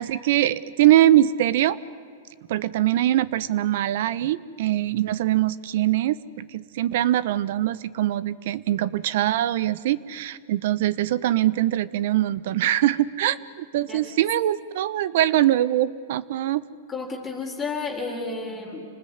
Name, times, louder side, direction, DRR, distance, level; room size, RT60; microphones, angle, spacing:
voice 1, 0.0-1.8 2.5-16.6, right 13 dB, 60° right, 19 dB, 1.0 m, -22 dB
voice 2, 16.9-18.9, left 4 dB, 15° left, -1 dB, 4.0 m, -32 dB
29.0 x 20.0 x 9.6 m, 2.1 s
hypercardioid pair, 145°, 0 cm